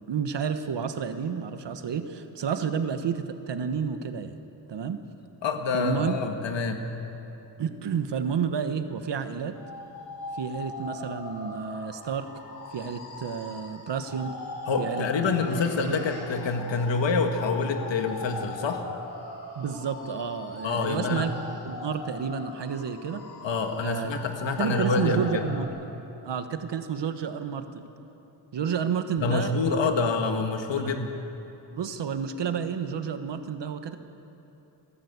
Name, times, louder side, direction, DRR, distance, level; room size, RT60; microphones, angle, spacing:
voice 1, 0.1-4.3 4.7-5.0 5.7-6.3 7.6-9.6 10.4-12.3 12.7-14.3 14.8-15.3 15.8-16.1 19.6-21.3 21.6-23.2 23.8-24.1 24.6-25.7 26.2-27.8 28.5-29.8 30.8-30.9 31.7-34.0, right 7 dB, 70° right, 9 dB, 1.3 m, -30 dB
voice 2, 5.4-6.9 14.7-18.8 20.6-21.3 23.4-25.4 29.2-31.1, left 4 dB, 80° left, 5 dB, 1.9 m, -27 dB
sound 1, 9.5-25.7, left 3 dB, 60° left, 5.4 m, -40 dB
27.5 x 11.5 x 8.2 m, 3.0 s
wide cardioid pair, 130°, 44 cm